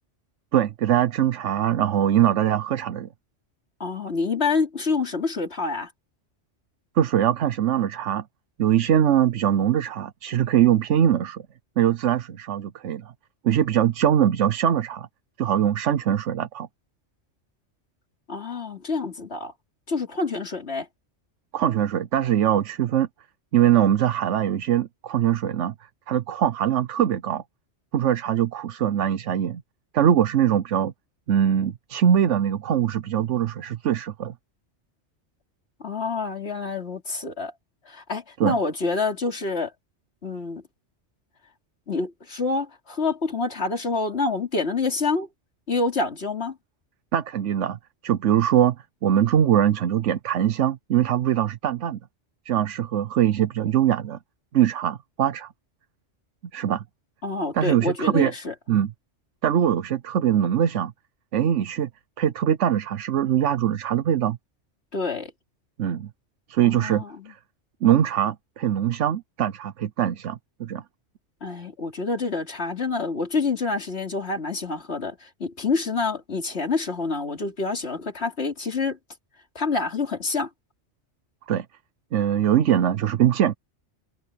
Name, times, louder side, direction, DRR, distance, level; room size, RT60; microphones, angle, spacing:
voice 1, 0.5-3.1 7.0-8.2 8.6-11.4 11.8-13.1 13.4-15.1 15.4-16.7 21.5-23.1 23.5-25.7 26.1-27.4 27.9-29.6 29.9-30.9 31.3-34.3 38.4-38.6 47.1-48.8 49.0-52.0 52.5-54.2 54.5-55.5 56.5-56.8 57.5-58.3 58.7-58.9 59.4-60.9 61.3-61.9 62.2-64.4 65.8-66.1 66.5-67.0 67.8-70.8 81.5-81.7 82.1-83.5, right 10 dB, 85° right, 1.1 m, -22 dB
voice 2, 3.8-5.9 18.3-19.5 19.9-20.9 35.8-37.5 37.9-39.7 40.2-40.6 41.9-45.3 45.7-46.6 57.2-58.5 64.9-65.3 66.6-67.3 71.4-79.0 79.5-80.5, left 3 dB, 60° left, 3.3 m, -27 dB
omnidirectional pair, 1.2 m